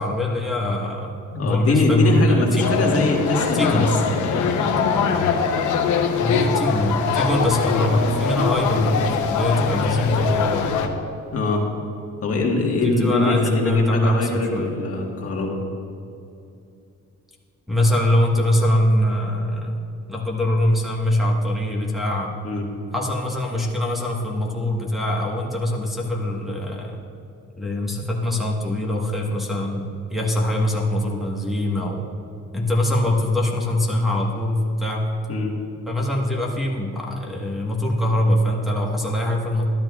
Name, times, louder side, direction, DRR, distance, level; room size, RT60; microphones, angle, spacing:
voice 1, 0.0-2.9 3.5-4.0 6.2-10.7 12.8-14.7 17.7-19.8 20.1-22.3 22.9-27.0 27.6-32.1 32.5-35.1 35.9-39.6, left 1 dB, ahead, -3 dB, 1.3 m, -23 dB
voice 2, 1.3-4.6 11.3-11.6 12.2-15.6 22.4-22.6 35.3-35.5, left 2 dB, 50° left, 0 dB, 1.6 m, -22 dB
sound 1, 2.6-10.9, left 6 dB, 80° left, 0.9 m, -22 dB
13.0 x 10.5 x 2.4 m, 2.6 s
cardioid pair, 90°, 30 cm